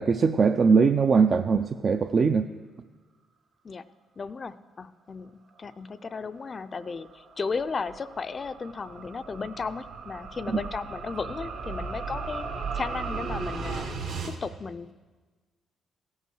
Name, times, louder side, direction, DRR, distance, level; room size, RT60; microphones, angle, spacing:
voice 1, 0.0-2.5 10.5-10.6, right 5 dB, 45° right, 8 dB, 0.3 m, -21 dB
voice 2, 4.2-12.4 12.7-13.9 14.2-14.9, left 4 dB, 35° left, 13 dB, 0.4 m, -35 dB
sound 1, 6.5-14.3, right 4 dB, 75° right, 1.5 m, -36 dB
16.0 x 5.6 x 6.2 m, 1.4 s
cardioid pair, 90°, 0 cm